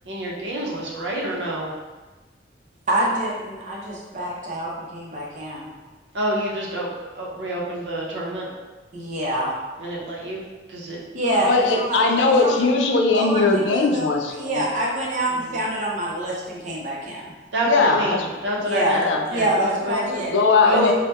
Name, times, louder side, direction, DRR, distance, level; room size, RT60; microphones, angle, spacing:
voice 1, 0.1-1.7 6.1-8.5 9.8-10.4 10.7-11.0 15.3-15.5 17.5-20.1 20.6-20.9, right 1 dB, 80° right, -3 dB, 0.7 m, -27 dB
voice 2, 2.9-5.7 8.9-9.5 11.1-12.6 13.1-14.1 14.4-17.3 18.6-19.0 19.3-20.3 20.7-20.8, right 1 dB, 45° right, -4 dB, 0.7 m, -26 dB
voice 3, 11.5-14.7 17.7-18.3 19.0-19.2 20.2-20.9, left 3 dB, 85° left, 2 dB, 0.4 m, -19 dB
2.7 x 2.1 x 3.4 m, 1.2 s
head